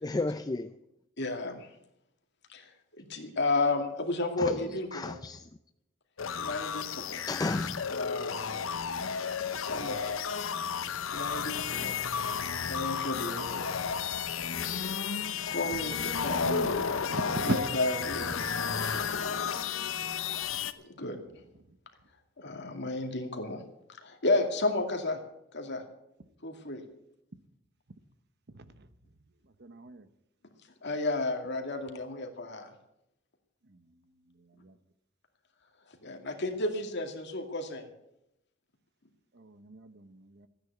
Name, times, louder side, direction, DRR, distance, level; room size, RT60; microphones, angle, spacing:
voice 1, 0.0-0.7 4.4-4.6 4.9-5.5 7.2-7.9, left 2 dB, 20° left, 9 dB, 0.4 m, -33 dB
voice 2, 1.2-1.7 2.5-2.7 3.0-5.2 6.4-7.2 7.9-8.7 9.5-10.1 11.1-11.9 12.7-13.7 15.5-16.4 17.4-19.0 20.7-21.2 22.4-23.6 24.0-25.2 25.5-25.8 26.4-26.8 30.8-32.7 36.0-37.9, left 2 dB, 60° left, 4 dB, 2.4 m, -32 dB
sound 1, 6.2-20.7, left 6 dB, 80° left, 0.8 m, -32 dB
voice 3, 16.4-17.6 28.5-28.6 29.6-30.1 34.6-34.7 39.4-40.5, right 2 dB, 55° right, 12 dB, 1.0 m, -37 dB
14.0 x 9.7 x 8.2 m, 0.83 s
head